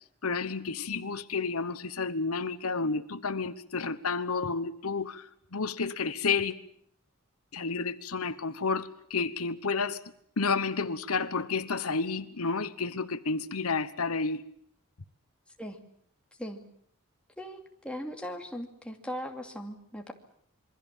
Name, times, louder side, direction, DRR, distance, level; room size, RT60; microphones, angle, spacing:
voice 1, 0.2-6.6 7.5-10.0 10.4-14.4, left 4 dB, 90° left, 13 dB, 1.2 m, -31 dB
voice 2, 17.4-20.1, equal, 5° left, 3 dB, 2.5 m, -39 dB
27.0 x 23.0 x 7.4 m, 0.65 s
head